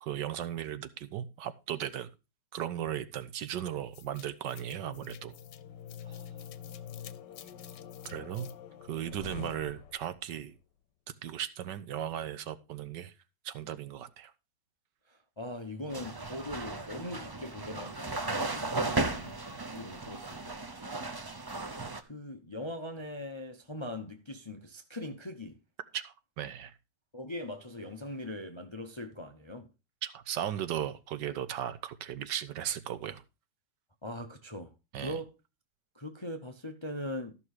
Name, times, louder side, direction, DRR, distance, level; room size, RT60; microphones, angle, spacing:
voice 1, 0.0-2.1 2.5-5.3 8.0-8.5 8.8-10.6 11.2-13.1 13.4-14.3 25.9-26.7 30.0-33.2 34.9-35.2, right 10 dB, 80° right, 1.5 m, -36 dB
sound 1, 3.9-10.3, left 9 dB, 80° left, 1.4 m, -46 dB
voice 2, 6.0-6.5 7.4-7.5 15.1-19.4 19.7-20.6 22.0-25.6 27.1-29.7 34.0-35.3 35.9-37.3, left 1 dB, 25° left, 0.6 m, -41 dB
sound 2, 15.9-22.0, right 2 dB, 35° right, 0.3 m, -35 dB
13.0 x 6.1 x 4.8 m
omnidirectional pair, 1.9 m